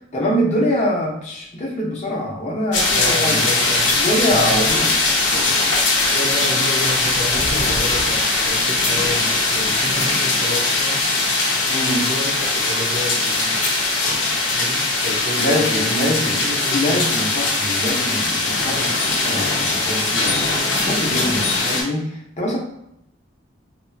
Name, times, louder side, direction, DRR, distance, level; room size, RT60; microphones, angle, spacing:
voice 1, 0.1-3.5 4.0-5.0 11.7-12.1 15.4-22.6, equal, 40° left, -3 dB, 0.8 m, -24 dB
sound 1, 2.7-21.8, left 3 dB, 85° left, 0.8 m, -20 dB
voice 2, 3.0-4.0 4.3-4.8 6.1-11.4 11.8-13.7 14.5-17.0 18.6-19.0, equal, 75° right, 0 dB, 0.7 m, -30 dB
2.9 x 2.3 x 2.6 m, 0.80 s
head